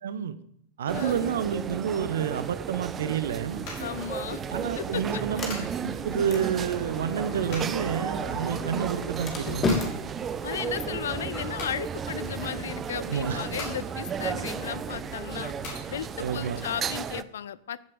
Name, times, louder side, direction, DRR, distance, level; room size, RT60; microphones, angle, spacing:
voice 1, 0.0-0.3 0.8-3.7 4.5-9.8 12.9-13.4 16.2-16.6, right 8 dB, 60° right, 14 dB, 0.8 m, -29 dB
voice 2, 0.9-1.3 3.8-4.4 4.8-5.2 10.4-15.5 15.9-17.9, left 9 dB, 60° left, 19 dB, 0.5 m, -35 dB
sound 1, 0.9-17.2, right 7 dB, 25° right, 0.6 m, -34 dB
sound 2, 3.2-16.7, left 1 dB, 45° left, 4.8 m, -43 dB
Sliding door, 4.1-14.1, left 3 dB, 25° left, 2.6 m, -37 dB
15.0 x 7.7 x 5.2 m, 0.68 s
figure-of-eight pair, 90°, 0 cm